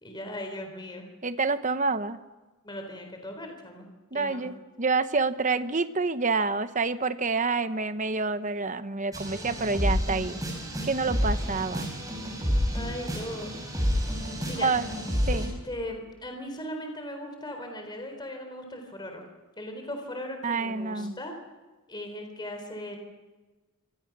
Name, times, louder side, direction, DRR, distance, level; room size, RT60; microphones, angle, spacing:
voice 1, 0.0-1.0 2.6-3.9 4.1-4.5 12.7-13.5 14.4-14.7 15.2-19.2 19.6-21.3 21.9-23.0, left 1 dB, 20° left, 4 dB, 3.9 m, -38 dB
voice 2, 1.2-2.2 4.1-10.4 10.8-11.9 14.6-14.9 15.3-15.5 20.4-21.2, right 4 dB, 35° right, 11 dB, 1.0 m, -28 dB
sound 1, 9.1-15.5, equal, 15° right, 6.0 m, -29 dB
27.0 x 25.5 x 6.1 m, 1.2 s
head